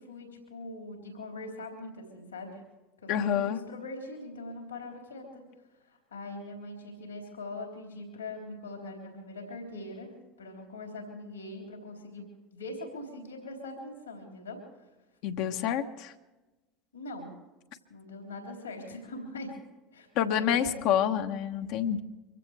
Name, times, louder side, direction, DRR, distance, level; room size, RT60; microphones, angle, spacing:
voice 1, 0.0-2.6 3.0-5.4 5.8-10.1 10.4-12.2 12.5-14.6 16.9-17.3 17.9-19.5 19.9-20.9, left 2 dB, 85° left, 1 dB, 3.6 m, -42 dB
voice 2, 3.1-3.6 15.2-16.1 20.1-22.0, left 9 dB, 60° left, 5 dB, 1.1 m, -28 dB
24.5 x 15.5 x 3.3 m, 1.1 s
hypercardioid pair, 75°, 0 cm